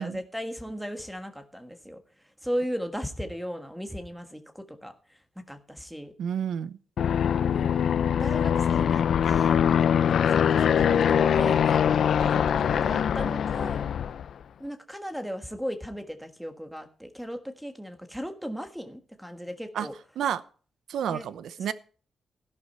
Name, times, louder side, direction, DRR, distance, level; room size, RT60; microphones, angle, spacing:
voice 1, 0.0-2.0 2.4-4.9 5.5-6.1 7.4-7.7 8.2-9.6 10.3-11.8 12.2-13.9 14.6-19.9 21.1-21.2, equal, ahead, 1.4 m, -36 dB
voice 2, 6.2-6.8 19.7-19.9 20.2-20.4 20.9-21.7, right 8 dB, 85° right, 0.8 m, -30 dB
Aircraft, 7.0-14.3, left 8 dB, 65° left, 0.5 m, -23 dB
13.0 x 11.5 x 4.3 m
wide cardioid pair, 165°, 0 cm